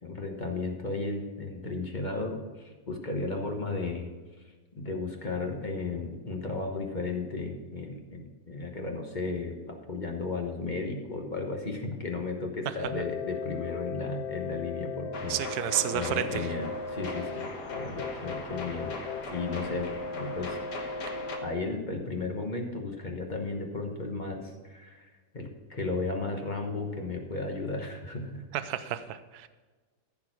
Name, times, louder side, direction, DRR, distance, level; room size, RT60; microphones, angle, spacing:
voice 1, 0.0-4.1 4.8-15.4 15.9-17.5 17.7-20.6 21.4-25.1 25.3-28.4, left 3 dB, 30° left, 2 dB, 1.1 m, -34 dB
sound 1, 12.8-21.5, left 4 dB, 55° left, 1.2 m, -37 dB
sound 2, 15.1-21.4, left 2 dB, 80° left, 1.8 m, -40 dB
voice 2, 15.3-16.5 28.5-29.5, right 11 dB, 75° right, 12 dB, 1.1 m, -31 dB
14.5 x 4.8 x 6.0 m, 1.3 s
omnidirectional pair, 1.7 m